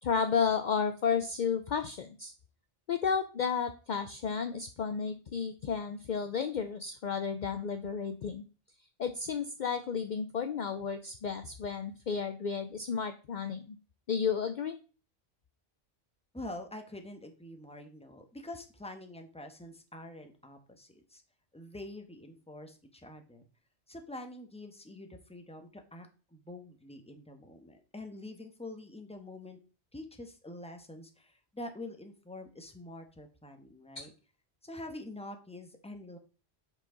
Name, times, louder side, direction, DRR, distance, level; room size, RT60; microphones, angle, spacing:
voice 1, 0.0-2.3 2.9-8.4 9.0-13.8 14.1-14.8 34.0-34.1, left 6 dB, 55° left, 9 dB, 0.6 m, -32 dB
voice 2, 16.3-21.2 21.5-23.5 23.9-29.6 29.9-34.1 34.6-36.2, left 1 dB, 5° left, 5 dB, 1.0 m, -46 dB
7.4 x 5.7 x 3.8 m, 0.35 s
omnidirectional pair, 1.1 m